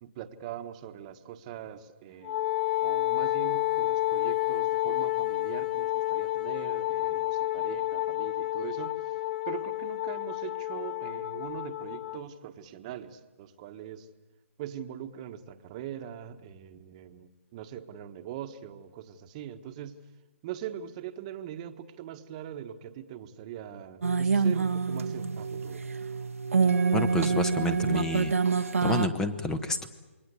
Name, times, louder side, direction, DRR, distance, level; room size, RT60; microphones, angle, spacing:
voice 1, 0.0-2.4 2.8-9.2 9.5-14.1 14.6-20.0 20.4-25.8, right 10 dB, 30° right, 8 dB, 1.5 m, -42 dB
Wind instrument woodwind instrument, 2.2-12.2, left 17 dB, 45° left, 0.8 m, -30 dB
sound 1, 24.0-29.1, right 5 dB, 90° right, 1.4 m, -26 dB
voice 2, 26.9-29.9, left 2 dB, 10° left, 11 dB, 1.2 m, -30 dB
28.5 x 22.0 x 8.4 m, 1.2 s
hypercardioid pair, 150°, 7 cm